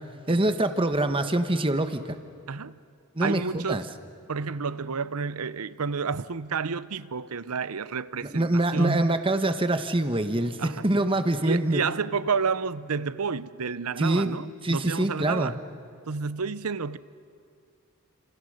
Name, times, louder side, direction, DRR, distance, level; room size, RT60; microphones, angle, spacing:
voice 1, 0.3-2.0 3.1-3.8 8.3-11.8 14.0-14.4 14.6-15.5, right 1 dB, 25° right, 1.2 m, -24 dB
voice 2, 2.5-2.8 3.2-3.8 4.3-9.2 10.6-10.9 11.4-15.6 16.1-17.0, right 5 dB, 80° right, 0.7 m, -30 dB
29.5 x 27.5 x 6.6 m
head